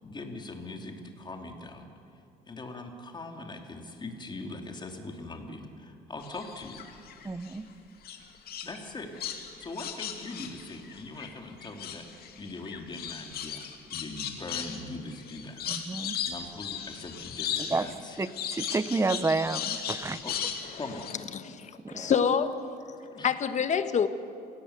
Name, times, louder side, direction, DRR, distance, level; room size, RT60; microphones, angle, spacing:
voice 1, 0.0-1.9 2.5-6.8 8.6-9.1 9.6-13.6 13.9-15.9 16.2-18.2 20.2-20.3 20.8-21.1 23.1-23.3, left 2 dB, 25° left, 3 dB, 3.1 m, -41 dB
sound 1, 6.2-7.6 8.0-11.3 11.6-21.1, left 8 dB, 65° left, 2.5 m, -37 dB
voice 2, 7.2-7.7 15.7-16.2 17.7-20.2 21.8-22.1, right 3 dB, 15° right, 14 dB, 1.0 m, -30 dB
voice 3, 21.3-22.6 23.2-24.1, left 7 dB, 45° left, 10 dB, 1.4 m, -26 dB
28.0 x 17.5 x 8.2 m, 2.4 s
cardioid pair, 110°, 17 cm